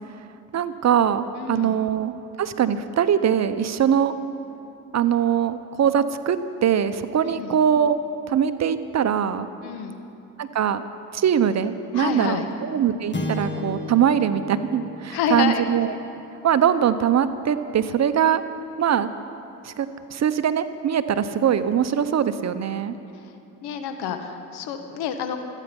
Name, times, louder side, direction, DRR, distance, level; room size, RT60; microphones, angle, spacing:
voice 1, 0.5-2.1 2.4-4.1 4.9-6.4 6.6-8.0 8.3-9.5 10.4-10.8 11.1-15.9 16.4-18.4 18.8-19.1 19.6-23.0, right 8 dB, 40° right, 12 dB, 0.9 m, -22 dB
voice 2, 1.4-1.8 7.2-7.6 9.6-10.0 11.9-12.4 15.1-15.6 23.1-23.3 23.6-25.4, left 7 dB, 65° left, 7 dB, 1.6 m, -28 dB
sound 1, 13.1-17.6, left 1 dB, 25° left, 1.8 m, -35 dB
26.0 x 9.3 x 5.4 m, 2.7 s
hypercardioid pair, 60°, 41 cm